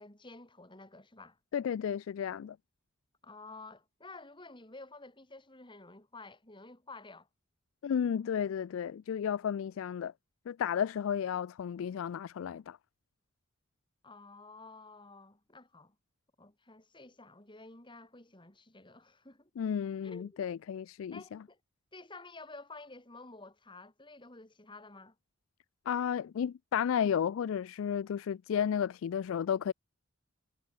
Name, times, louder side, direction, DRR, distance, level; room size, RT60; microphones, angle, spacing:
voice 1, 0.0-1.4 3.2-7.3 14.0-15.9 16.4-19.5 20.0-20.4 21.1-21.6 21.9-25.1, left 3 dB, 25° left, 3.3 m, -51 dB
voice 2, 1.5-2.6 7.8-10.1 10.5-12.8 19.6-21.4 25.9-29.7, left 8 dB, 70° left, 0.3 m, -33 dB
head